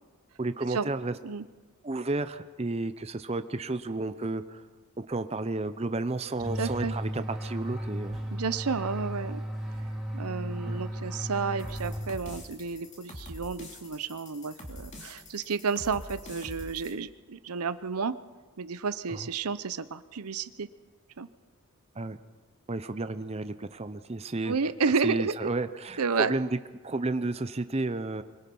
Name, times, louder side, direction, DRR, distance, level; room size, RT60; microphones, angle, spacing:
voice 1, 0.4-1.1 1.8-4.6 5.0-8.2 10.6-10.8 19.1-19.3 22.0-22.2 22.7-24.5 25.0-26.6 26.8-28.2, right 2 dB, 30° right, 11 dB, 0.6 m, -32 dB
sound 1, 6.4-12.5, equal, ahead, 3.0 m, -35 dB
voice 2, 6.6-6.9 8.3-9.4 10.1-18.1 18.6-20.7 21.2-21.3 24.5-25.5 26.0-26.3, right 5 dB, 85° right, 14 dB, 0.8 m, -31 dB
sound 2, 11.6-16.9, left 1 dB, 30° left, 2.9 m, -44 dB
24.0 x 22.0 x 5.5 m, 1.4 s
head